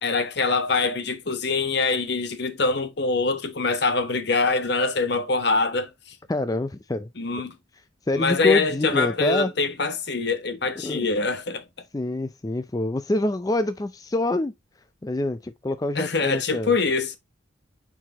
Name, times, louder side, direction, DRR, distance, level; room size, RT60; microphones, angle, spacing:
voice 1, 0.0-6.1 7.2-7.5 8.1-11.6 15.9-17.2, left 4 dB, 55° left, 1.2 m, -24 dB
voice 2, 6.3-7.1 8.1-9.5 10.8-11.1 11.9-14.5 15.0-16.7, left 2 dB, 20° left, 0.4 m, -26 dB
9.5 x 4.8 x 2.9 m
head